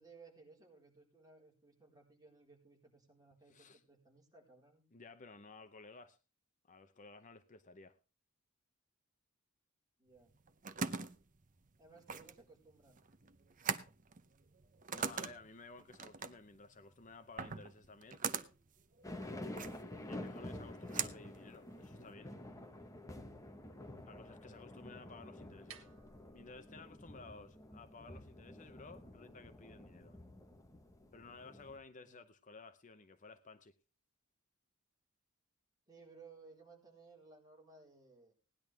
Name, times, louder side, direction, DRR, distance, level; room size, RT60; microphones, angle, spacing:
voice 1, 0.0-4.8 10.0-10.3 11.8-13.0 19.9-20.2 24.3-24.6 31.9-32.2 35.9-38.3, right 4 dB, 20° right, 4.3 m, -60 dB
voice 2, 3.5-3.8 4.9-6.2 6.6-8.0 14.9-18.2 20.1-22.3 24.0-25.9 26.3-30.2 31.1-33.7, left 3 dB, 35° left, 0.7 m, -55 dB
sound 1, 10.2-22.1, right 6 dB, 40° right, 0.8 m, -43 dB
sound 2, 19.0-31.8, left 1 dB, 15° left, 1.3 m, -49 dB
sound 3, 25.4-31.4, right 7 dB, 70° right, 1.7 m, -64 dB
18.0 x 10.5 x 3.5 m
head